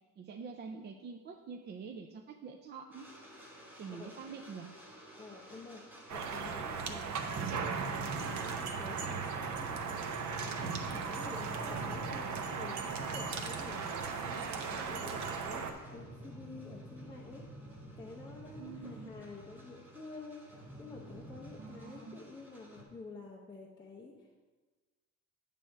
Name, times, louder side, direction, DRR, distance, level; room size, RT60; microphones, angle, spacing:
voice 1, 0.2-3.1 3.8-4.7 18.6-19.1 21.6-22.2, right 5 dB, 35° right, 3 dB, 0.4 m, -46 dB
sound 1, 2.9-6.7 7.0-22.8, right 1 dB, 5° right, 1.2 m, -50 dB
voice 2, 5.2-7.6 8.0-9.7 10.4-13.9 14.3-15.6 15.9-17.4 18.0-24.3, left 3 dB, 15° left, -2 dB, 0.6 m, -49 dB
sound 2, 6.1-15.7, right 5 dB, 70° right, 0.9 m, -37 dB
8.7 x 3.4 x 6.4 m, 1.3 s
cardioid pair, 170°, 30 cm